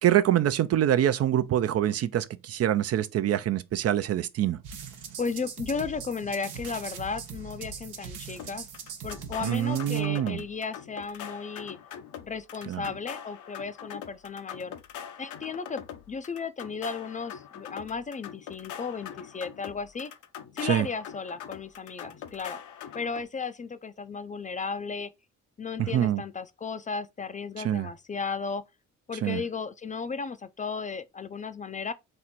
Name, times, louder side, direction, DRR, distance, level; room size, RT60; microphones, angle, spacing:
voice 1, 0.0-4.6 9.4-10.4 12.7-12.9 20.6-20.9 25.8-26.2 27.6-27.9 29.2-29.4, right 11 dB, 55° right, 0.5 m, -25 dB
sound 1, 4.6-10.0, right 6 dB, 85° right, 1.1 m, -41 dB
voice 2, 5.2-8.7 9.0-11.8 12.2-14.7 15.2-20.1 20.5-22.6 22.9-25.1 25.6-28.6 29.1-31.9, left 5 dB, 25° left, 0.4 m, -35 dB
sound 2, 8.4-23.2, left 9 dB, 75° left, 0.7 m, -43 dB
4.3 x 2.5 x 4.2 m
cardioid pair, 90°, 30 cm